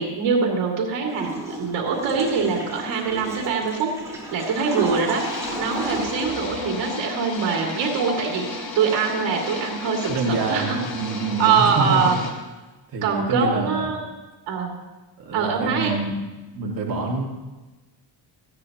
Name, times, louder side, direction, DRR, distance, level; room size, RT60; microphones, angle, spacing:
voice 1, 0.0-5.2 5.6-10.8 11.4-12.2 13.0-14.0 14.5-14.7 15.3-15.9, right 5 dB, 80° right, -1 dB, 2.5 m, -23 dB
Water / Toilet flush, 1.1-7.3, right 1 dB, 5° right, 2.7 m, -33 dB
sound 1, 5.1-12.3, left 3 dB, 55° left, 2.3 m, -33 dB
voice 2, 10.1-12.2 12.9-13.9 15.2-16.2 16.5-17.3, right 3 dB, 50° right, -2 dB, 2.0 m, -26 dB
18.0 x 14.5 x 2.9 m, 1.2 s
cardioid pair, 160°, 45 cm